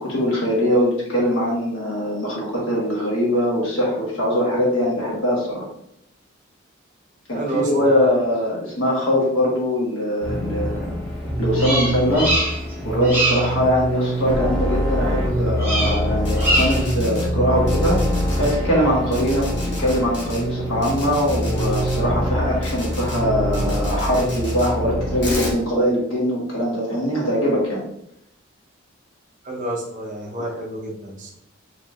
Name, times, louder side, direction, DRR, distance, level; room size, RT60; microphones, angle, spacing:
voice 1, 0.0-5.6 7.3-10.9 11.4-12.3 12.8-18.0 18.4-27.8, equal, 85° left, -4 dB, 1.5 m, -22 dB
voice 2, 7.3-8.1 29.4-31.4, right 2 dB, 40° right, -2 dB, 0.8 m, -29 dB
sound 1, 10.2-25.5, equal, 5° left, 0.8 m, -24 dB
Bird vocalization bird call bird song, 11.5-12.7 13.0-13.5 15.6-16.0 16.3-16.9, right 1 dB, 10° right, 1.4 m, -23 dB
sound 2, 16.2-17.2 17.7-18.5 19.1-20.4 20.8-22.0 22.6-23.2 23.5-24.7 25.2-25.5, left 2 dB, 55° left, 1.2 m, -35 dB
4.5 x 3.2 x 2.4 m, 0.75 s
head